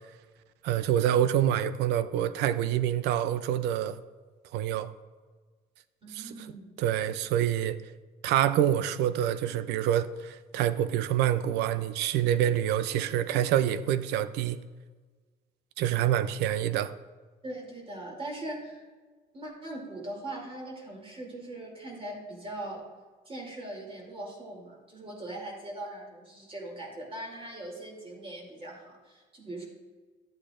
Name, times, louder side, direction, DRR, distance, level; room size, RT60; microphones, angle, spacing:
voice 1, 0.6-4.0 4.5-4.9 6.2-6.3 6.8-7.8 8.2-14.6 15.8-16.9, right 11 dB, 85° right, 14 dB, 0.5 m, -26 dB
voice 2, 6.0-6.7 17.4-18.8 19.3-22.9 23.3-29.7, right 1 dB, 35° right, -1 dB, 2.8 m, -40 dB
12.0 x 8.4 x 2.5 m, 1.4 s
cardioid pair, 110°, 17 cm